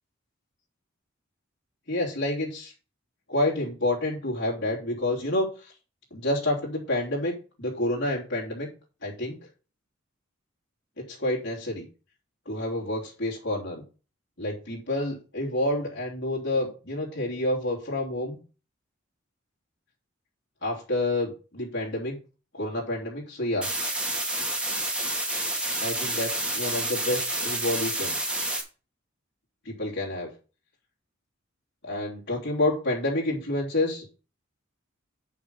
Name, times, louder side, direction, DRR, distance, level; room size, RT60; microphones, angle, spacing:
voice 1, 1.9-2.7 3.3-5.7 6.1-8.7 9.0-9.4 11.0-11.8 12.4-13.8 14.4-18.4 20.6-22.2 22.5-23.7 25.8-28.1 29.6-30.3 31.8-34.1, left 1 dB, 60° left, -3 dB, 3.2 m, -29 dB
sound 1, 23.6-28.6, right 1 dB, 5° right, 2.6 m, -29 dB
9.4 x 5.9 x 5.4 m, 0.34 s
head